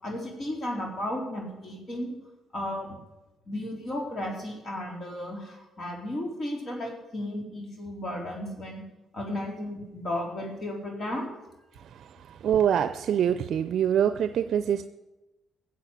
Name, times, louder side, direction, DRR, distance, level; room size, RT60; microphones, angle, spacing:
voice 1, 0.0-2.1 2.5-3.0 3.5-8.8 9.1-11.3, left 1 dB, 40° left, 1 dB, 3.8 m, -34 dB
voice 2, 11.7-14.9, right 9 dB, 65° right, 11 dB, 0.5 m, -25 dB
15.0 x 7.7 x 8.2 m, 1.0 s
cardioid pair, 90°, 0 cm